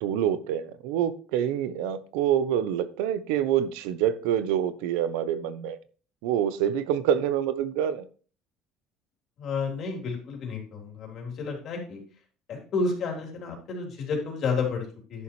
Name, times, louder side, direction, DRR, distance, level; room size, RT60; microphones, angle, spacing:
voice 1, 0.0-5.8 6.2-8.1, right 10 dB, 90° right, 13 dB, 0.9 m, -26 dB
voice 2, 9.4-12.0 12.5-15.2, left 4 dB, 45° left, 1 dB, 3.8 m, -31 dB
11.0 x 7.0 x 3.2 m, 0.39 s
cardioid pair, 135°, 0 cm